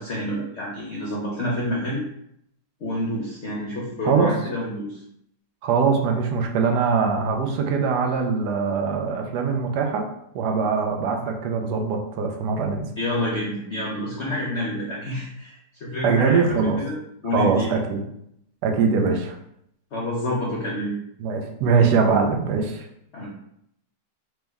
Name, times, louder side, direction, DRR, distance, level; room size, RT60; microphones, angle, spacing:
voice 1, 0.0-2.0 2.8-5.0 13.0-15.5 15.8-16.9 17.2-17.7 19.9-20.9 23.1-23.3, left 1 dB, 55° left, -4 dB, 0.7 m, -28 dB
voice 2, 5.6-10.1 10.3-12.9 16.0-16.8 17.3-18.0 18.6-19.3 21.2-22.9, right 5 dB, 70° right, 3 dB, 1.1 m, -22 dB
3.3 x 3.1 x 3.4 m, 0.74 s
omnidirectional pair, 1.9 m